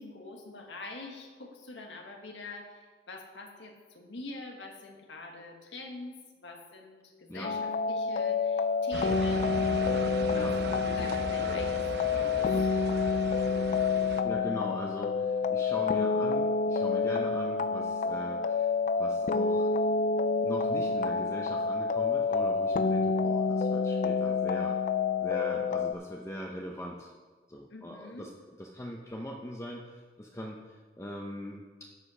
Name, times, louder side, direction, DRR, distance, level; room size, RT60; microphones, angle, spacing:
voice 1, 0.0-12.5 27.7-28.3, left 2 dB, 80° left, 2 dB, 1.5 m, -45 dB
sound 1, 7.4-25.9, left 4 dB, 45° left, 0.3 m, -28 dB
sound 2, 8.9-14.2, right 3 dB, 65° right, 0.8 m, -38 dB
voice 2, 14.2-18.7 19.0-19.7 20.4-24.8 25.2-27.1 27.5-28.3 28.6-31.9, equal, 15° left, 0 dB, 0.7 m, -41 dB
12.5 x 5.5 x 5.5 m, 1.5 s
head